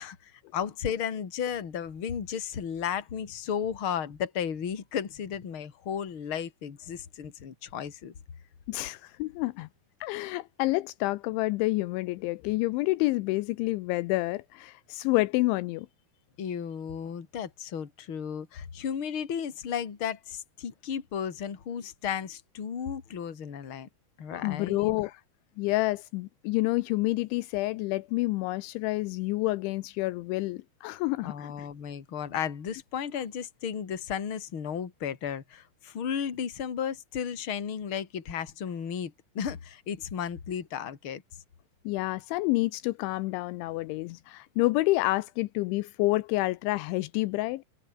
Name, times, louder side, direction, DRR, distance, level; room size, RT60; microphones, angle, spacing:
voice 1, 0.0-8.1 16.4-23.9 24.2-24.9 31.2-41.2, left 8 dB, 35° left, 2.5 m, -34 dB
voice 2, 8.7-9.7 10.0-15.9 24.3-25.1 25.6-31.7 41.9-47.6, left 20 dB, 85° left, 3.0 m, -28 dB
omnidirectional pair, 5.6 m